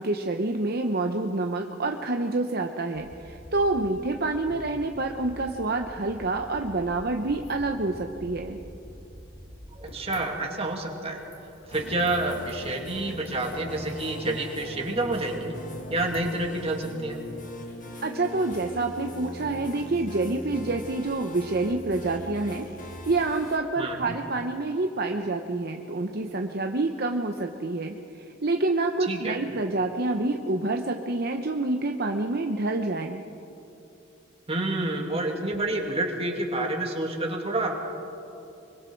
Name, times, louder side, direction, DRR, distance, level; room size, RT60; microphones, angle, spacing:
voice 1, 0.0-8.6 18.0-33.2, right 2 dB, 50° right, 4 dB, 0.9 m, -27 dB
sound 1, 2.9-9.8, equal, 10° left, 4.6 m, -46 dB
sound 2, 7.2-19.1, left 1 dB, 80° left, 5.3 m, -49 dB
voice 2, 9.8-11.2 11.7-15.5 15.9-17.2 23.8-24.1 29.1-29.4 34.5-37.8, right 2 dB, 30° right, 1 dB, 2.3 m, -29 dB
sound 3, 11.7-23.6, left 1 dB, 40° left, 1.8 m, -40 dB
25.0 x 23.5 x 4.6 m, 2.9 s
head